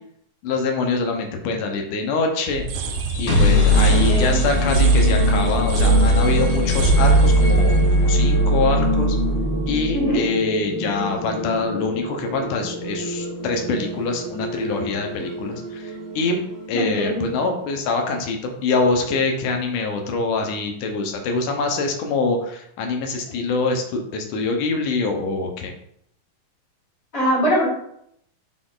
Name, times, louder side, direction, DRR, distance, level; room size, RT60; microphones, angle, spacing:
voice 1, 0.4-2.7 3.2-9.2 9.7-16.4 16.7-25.7, left 3 dB, 75° left, 3 dB, 2.3 m, -24 dB
sound 1, 2.5-9.3, right 4 dB, 80° right, 2.2 m, -29 dB
sound 2, 3.0-16.8, equal, 50° left, 2.8 m, -20 dB
voice 2, 3.9-4.3 9.9-10.3 16.7-17.3 27.1-27.7, equal, 25° left, -7 dB, 2.4 m, -22 dB
5.9 x 4.2 x 3.8 m, 0.71 s
omnidirectional pair, 3.9 m